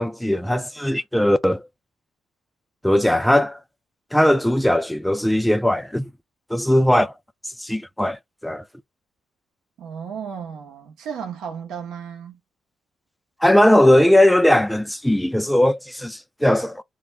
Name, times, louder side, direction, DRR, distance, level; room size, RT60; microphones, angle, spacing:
voice 1, 0.0-1.6 2.8-3.6 4.1-6.1 6.5-7.1 7.6-8.6 13.4-16.8, left 1 dB, 5° left, 0.3 m, -18 dB
voice 2, 9.8-12.4, right 7 dB, 80° right, 0.8 m, -34 dB
2.3 x 2.2 x 3.1 m
cardioid pair, 90°, 0 cm